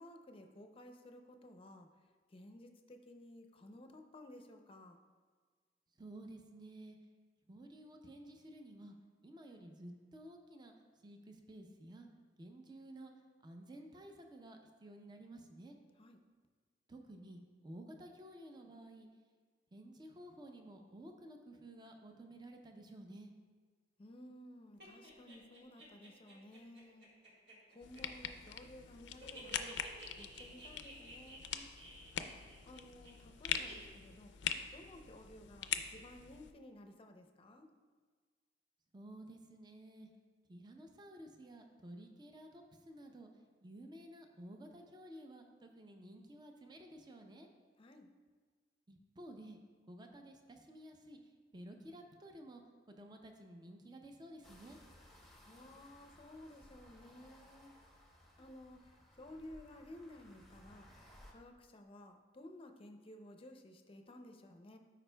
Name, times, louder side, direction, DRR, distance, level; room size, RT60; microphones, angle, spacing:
voice 1, 0.0-1.9 2.3-5.0 16.0-16.2 24.0-27.1 27.7-29.8 30.2-31.7 32.7-37.7 47.8-48.1 55.4-57.7 58.4-60.9 61.3-64.8, left 1 dB, 30° left, 5 dB, 0.5 m, -55 dB
voice 2, 6.0-7.0 7.5-9.0 9.2-10.7 11.0-12.1 12.4-13.1 13.4-15.8 16.9-19.1 19.7-23.3 38.9-40.1 40.5-43.3 43.6-47.5 48.9-49.6 49.9-51.2 51.5-52.6 52.9-54.8, right 1 dB, 25° right, 4 dB, 0.5 m, -53 dB
sound 1, 24.8-28.8 29.0-33.1 33.5-33.9, right 1 dB, 80° right, 1.6 m, -53 dB
sound 2, 27.8-36.5, left 8 dB, 80° left, 0.4 m, -43 dB
sound 3, 54.4-61.3, equal, ahead, 0.9 m, -61 dB
12.5 x 5.0 x 2.2 m, 1.5 s
head